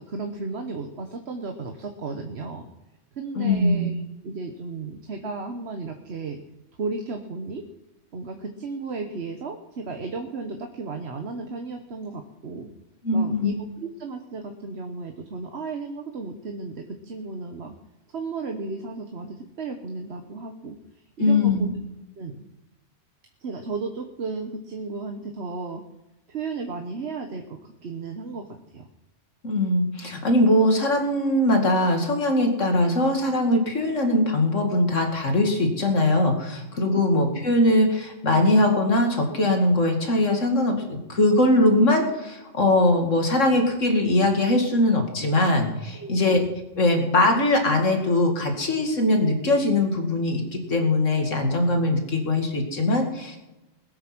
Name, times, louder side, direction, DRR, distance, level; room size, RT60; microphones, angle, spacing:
voice 1, 0.0-2.7 3.1-6.4 6.8-7.6 8.1-12.7 13.1-17.7 18.1-20.8 21.2-21.7 22.2-22.5 23.4-25.8 26.3-28.9 36.8-37.0 45.9-46.3, right 4 dB, 60° right, 5 dB, 1.3 m, -34 dB
voice 2, 3.4-3.9 13.0-13.5 21.2-21.7 29.4-46.4 46.8-53.4, left 1 dB, 85° left, 3 dB, 2.7 m, -21 dB
20.5 x 8.7 x 6.1 m, 1.0 s
omnidirectional pair, 1.3 m